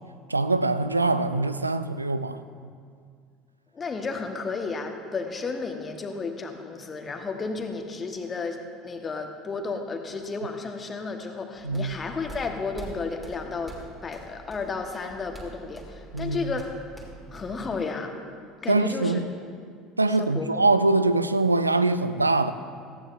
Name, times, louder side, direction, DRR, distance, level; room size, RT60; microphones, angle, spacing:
voice 1, 0.3-2.4 11.6-12.0 16.1-16.4 18.7-19.3 20.0-22.5, right 2 dB, 90° right, 0.4 m, -23 dB
voice 2, 3.7-16.7 17.3-18.2 18.6-19.2 20.1-20.7, left 4 dB, 25° left, 1.4 m, -33 dB
sound 1, 11.5-17.8, right 2 dB, 10° right, 3.0 m, -45 dB
18.0 x 14.5 x 2.6 m
figure-of-eight pair, 65°, 0 cm